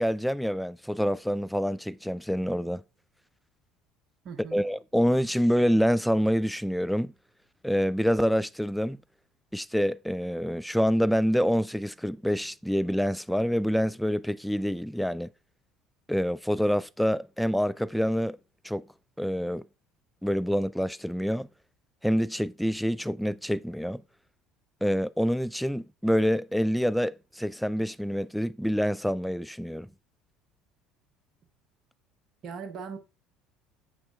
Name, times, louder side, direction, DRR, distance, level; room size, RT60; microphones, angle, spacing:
voice 1, 0.0-2.8 4.5-7.1 7.6-9.0 9.5-15.3 16.1-18.4 18.6-18.9 19.2-19.7 20.2-21.5 22.0-24.0 24.8-29.9, equal, ahead, 0.3 m, -26 dB
voice 2, 4.2-4.6 32.4-33.0, right 6 dB, 50° right, 1.0 m, -39 dB
7.5 x 6.1 x 2.3 m
hypercardioid pair, 65°, 0 cm